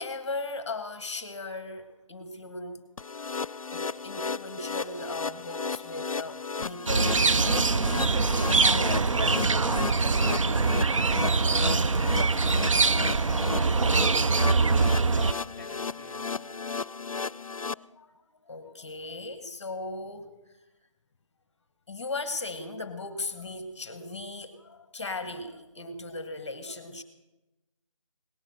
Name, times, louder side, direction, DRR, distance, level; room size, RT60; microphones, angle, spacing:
voice 1, 0.0-2.8 3.7-7.4 7.7-9.2 17.7-18.1 18.5-20.4 21.9-27.0, left 2 dB, 20° left, 10 dB, 1.1 m, -37 dB
sound 1, 3.0-17.7, left 5 dB, 85° left, 0.4 m, -34 dB
sound 2, 6.9-15.3, right 4 dB, 70° right, 0.6 m, -23 dB
voice 2, 11.0-14.0 14.6-16.3, left 2 dB, 5° right, 2 dB, 3.5 m, -48 dB
18.0 x 12.0 x 6.3 m, 1.0 s
figure-of-eight pair, 155°, 17 cm